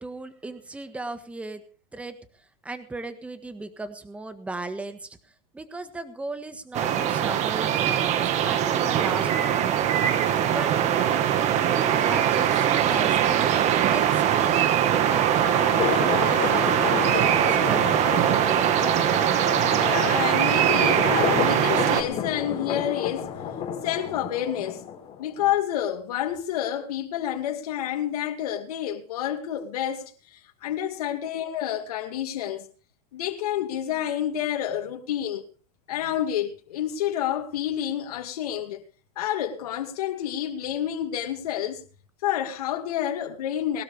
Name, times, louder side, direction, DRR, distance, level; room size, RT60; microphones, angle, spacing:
voice 1, 0.0-1.6 1.9-2.2 2.6-5.1 5.5-9.8 10.4-11.2 11.6-13.5 13.8-16.8 17.3-18.0, right 2 dB, 5° right, 1.5 m, -36 dB
sound 1, 6.7-22.0, right 10 dB, 35° right, 1.6 m, -22 dB
sound 2, 14.8-25.2, left 8 dB, 30° left, 4.9 m, -31 dB
voice 2, 19.6-23.3 23.8-24.8 25.2-32.7 33.1-35.4 35.9-38.8 39.2-41.8 42.2-43.8, left 11 dB, 85° left, 2.4 m, -29 dB
21.0 x 12.5 x 3.5 m
supercardioid pair, 145°, 19 cm